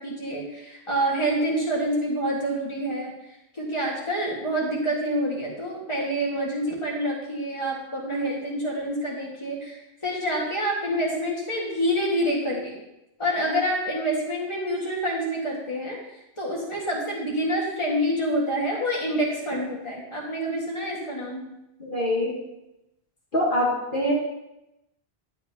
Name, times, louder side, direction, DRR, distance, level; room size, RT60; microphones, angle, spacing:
voice 1, 0.0-3.1 3.5-12.7 13.2-21.4, equal, 25° left, -3 dB, 2.0 m, -27 dB
voice 2, 21.8-22.3 23.3-24.1, left 1 dB, 50° left, -5 dB, 1.7 m, -24 dB
11.0 x 8.1 x 3.0 m, 0.91 s
omnidirectional pair, 1.1 m